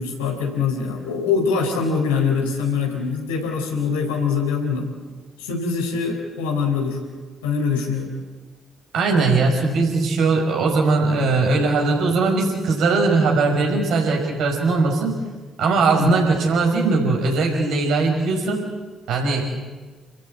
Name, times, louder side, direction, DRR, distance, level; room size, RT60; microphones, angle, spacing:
voice 1, 0.0-4.9 5.4-7.0 7.4-8.1 16.0-16.2, left 5 dB, 80° left, 1 dB, 4.2 m, -23 dB
voice 2, 8.9-15.1 15.6-18.6 19.1-19.5, right 3 dB, 65° right, 0 dB, 5.7 m, -20 dB
29.0 x 14.5 x 8.1 m, 1.3 s
figure-of-eight pair, 40°, 0 cm